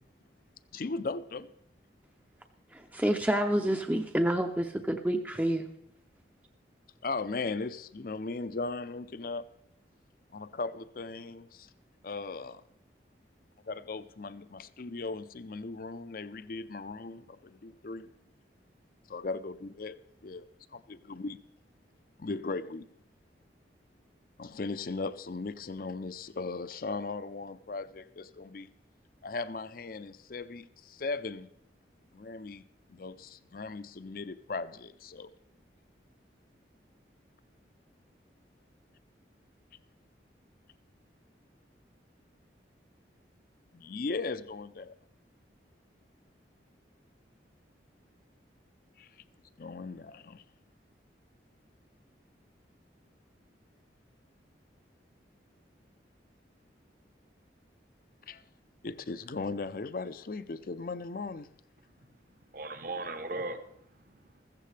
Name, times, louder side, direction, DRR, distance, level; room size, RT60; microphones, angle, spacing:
voice 1, 0.7-1.5 7.0-9.5 10.3-11.7 12.0-12.6 13.7-18.1 19.1-21.4 22.2-22.9 24.4-28.7 29.2-31.5 32.1-32.6 32.9-35.3 43.7-44.9 49.0-49.1 49.6-50.4 58.3-58.4 58.8-61.5, left 3 dB, 50° left, 0.5 m, -38 dB
voice 2, 2.7-5.7, right 1 dB, 10° right, 0.5 m, -28 dB
voice 3, 62.5-64.4, right 2 dB, 50° right, 0.9 m, -39 dB
15.0 x 14.5 x 3.3 m
head